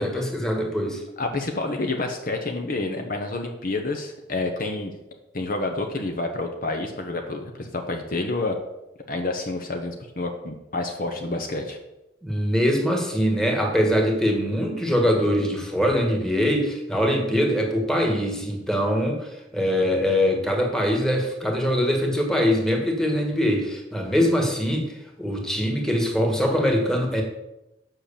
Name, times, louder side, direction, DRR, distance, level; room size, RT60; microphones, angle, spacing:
voice 1, 0.0-1.0 12.2-27.2, equal, 5° left, 1 dB, 1.7 m, -23 dB
voice 2, 1.2-4.9 5.3-8.6 9.1-11.8, left 2 dB, 50° left, 4 dB, 1.1 m, -28 dB
7.9 x 5.9 x 7.0 m, 0.91 s
head